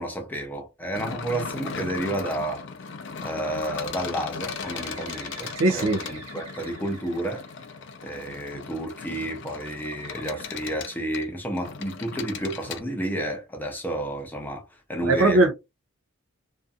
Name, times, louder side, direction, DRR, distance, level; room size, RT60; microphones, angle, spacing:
voice 1, 0.0-2.7 3.2-7.5 8.0-14.6 14.9-15.5, right 1 dB, 10° left, 0.5 m, -31 dB
sound 1, 0.9-12.8, left 5 dB, 55° left, 0.5 m, -37 dB
Bird, 4.4-8.2 9.9-11.7, right 4 dB, 30° right, 1.4 m, -47 dB
voice 2, 5.6-6.0 15.0-15.5, right 2 dB, 65° right, 0.5 m, -19 dB
2.6 x 2.4 x 2.3 m
head